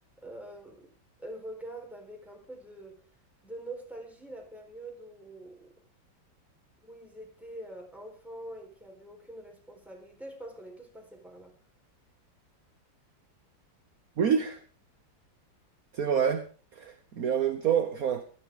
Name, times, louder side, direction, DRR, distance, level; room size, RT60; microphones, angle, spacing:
voice 1, 0.2-0.9 1.2-3.0 3.4-5.7 6.8-11.5, right 1 dB, ahead, 0 dB, 4.4 m, -44 dB
voice 2, 14.2-14.6 15.9-16.4 16.7-18.2, right 7 dB, 55° right, 8 dB, 1.4 m, -27 dB
17.5 x 13.5 x 3.8 m, 0.38 s
omnidirectional pair, 2.0 m